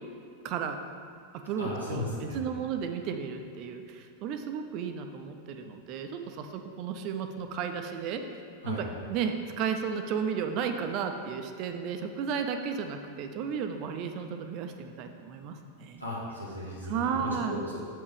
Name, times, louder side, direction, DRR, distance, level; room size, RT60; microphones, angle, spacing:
voice 1, 0.4-0.8 1.3-8.2 8.7-16.0 16.8-17.6, right 7 dB, 40° right, 6 dB, 0.6 m, -33 dB
voice 2, 1.6-2.4 8.6-8.8 16.0-17.8, left 1 dB, 90° left, -6 dB, 1.7 m, -36 dB
7.2 x 4.8 x 5.0 m, 2.3 s
figure-of-eight pair, 90°, 0 cm